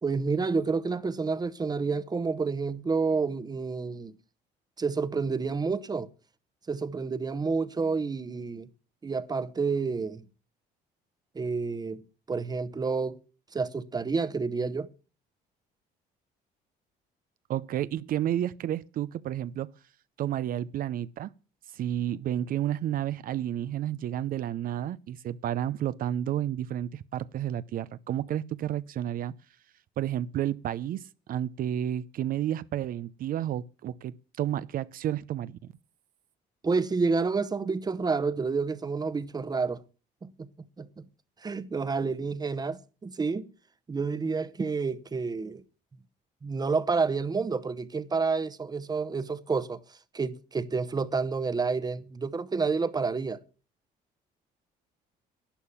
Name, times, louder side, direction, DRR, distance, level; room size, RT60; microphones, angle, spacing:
voice 1, 0.0-4.1 4.8-6.1 6.7-8.7 9.0-10.2 11.3-13.2 13.5-14.9 36.6-39.8 40.2-40.5 40.8-41.0 41.4-43.5 43.9-45.6 46.4-49.8 50.1-53.4, right 4 dB, 25° right, 0.9 m, -29 dB
voice 2, 17.5-19.7 20.2-21.3 21.7-29.3 30.0-35.7, right 11 dB, 55° right, 0.6 m, -31 dB
11.5 x 10.5 x 7.1 m
cardioid pair, 110°, 17 cm